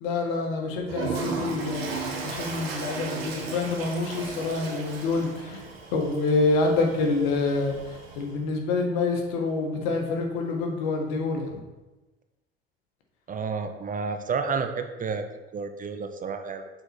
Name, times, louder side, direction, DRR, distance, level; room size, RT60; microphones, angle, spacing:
voice 1, 0.0-5.6 5.9-11.6, left 3 dB, 70° left, 2 dB, 1.5 m, -27 dB
Toilet flush, 0.8-8.4, right 4 dB, 85° right, 1.3 m, -35 dB
voice 2, 13.3-15.3 15.5-16.7, right 5 dB, 25° right, 8 dB, 0.6 m, -30 dB
6.7 x 4.3 x 4.4 m, 1.1 s
hypercardioid pair, 80°, 30 cm